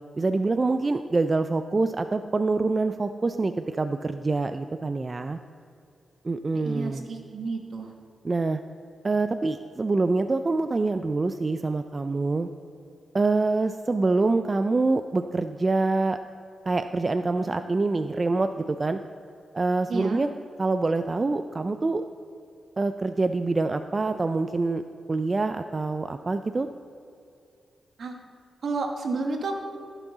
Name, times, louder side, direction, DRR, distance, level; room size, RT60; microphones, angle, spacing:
voice 1, 0.2-5.4 6.2-7.1 8.2-8.6 9.0-12.5 13.1-16.2 16.7-19.0 19.5-20.3 20.6-22.1 22.8-24.8 25.1-26.7, right 3 dB, 35° right, 9 dB, 0.4 m, -25 dB
voice 2, 6.5-7.9 19.9-20.2 28.0-28.2 28.6-29.5, right 3 dB, 70° right, 3 dB, 1.2 m, -31 dB
15.0 x 6.1 x 4.0 m, 2.5 s
cardioid pair, 65°, 0 cm